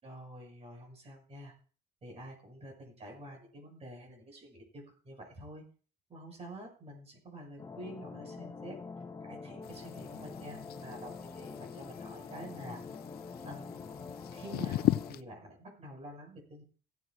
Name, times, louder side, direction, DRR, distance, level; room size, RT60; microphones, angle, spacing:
voice 1, 0.0-1.5 2.0-5.6 6.1-8.8 9.2-12.8 13.4-13.8 14.3-16.6, right 1 dB, 35° right, 0 dB, 6.4 m, -48 dB
sound 1, 7.6-15.1, left 4 dB, 20° left, 1.4 m, -45 dB
sound 2, 9.6-15.2, left 15 dB, 65° left, 0.6 m, -37 dB
16.5 x 7.5 x 4.7 m, 0.39 s
cardioid pair, 110°, 17 cm